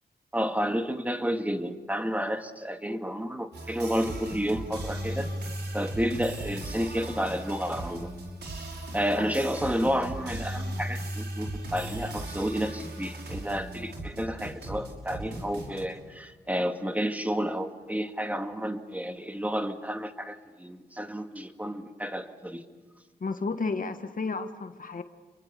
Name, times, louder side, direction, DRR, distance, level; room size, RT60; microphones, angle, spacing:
voice 1, 0.3-5.3 5.7-8.1 8.9-22.6, equal, 10° right, 6 dB, 2.2 m, -31 dB
sound 1, 3.5-15.8, right 1 dB, 75° right, 5.8 m, -37 dB
voice 2, 23.2-25.0, left 4 dB, 50° left, 8 dB, 1.7 m, -32 dB
29.5 x 23.5 x 6.9 m, 1.3 s
cardioid pair, 60°, 17 cm